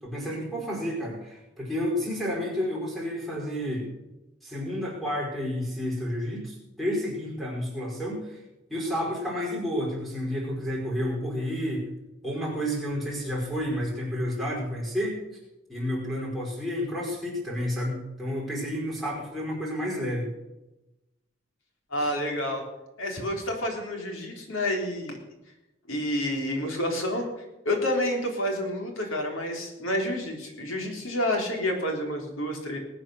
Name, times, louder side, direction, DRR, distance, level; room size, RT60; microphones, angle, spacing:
voice 1, 0.0-3.9 4.4-8.4 8.7-11.8 12.2-15.2 15.7-20.3 22.0-22.1, equal, ahead, -5 dB, 5.1 m, -30 dB
voice 2, 21.9-22.6 23.0-25.2 25.9-27.3 27.6-32.8, left 1 dB, 85° left, 2 dB, 3.7 m, -29 dB
20.0 x 8.7 x 6.5 m, 0.97 s
head